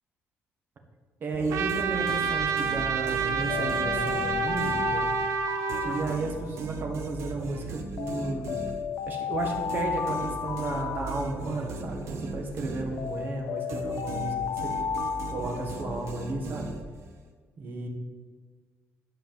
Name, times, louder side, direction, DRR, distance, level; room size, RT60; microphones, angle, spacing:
voice 1, 1.2-5.1 5.8-8.6 9.1-14.8 15.3-16.7 17.6-17.9, right 2 dB, 40° right, 2 dB, 1.8 m, -33 dB
sound 1, 1.3-5.3 5.7-13.3 13.7-17.2, right 3 dB, 70° right, 1.3 m, -38 dB
Trumpet, 1.5-6.2, right 7 dB, 85° right, 1.0 m, -29 dB
Alarm, 3.5-6.8 8.0-11.8 13.0-16.2, left 7 dB, 65° left, 0.6 m, -33 dB
11.5 x 5.0 x 7.8 m, 1.5 s
cardioid pair, 165°, 5 cm